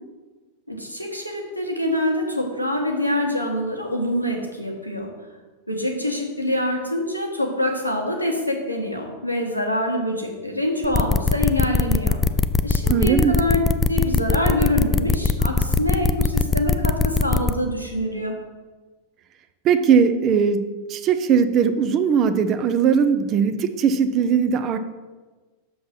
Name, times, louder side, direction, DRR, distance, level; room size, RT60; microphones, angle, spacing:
voice 1, 0.7-5.1 5.7-12.2 12.6-13.6 13.9-18.4, left 1 dB, 90° left, 1 dB, 1.3 m, -25 dB
sound 1, 10.8-17.5, left 4 dB, 15° left, 0.4 m, -20 dB
voice 2, 12.9-13.3 19.6-24.8, right 7 dB, 35° right, 9 dB, 0.6 m, -19 dB
6.7 x 5.4 x 5.9 m, 1.3 s
figure-of-eight pair, 90°, 0 cm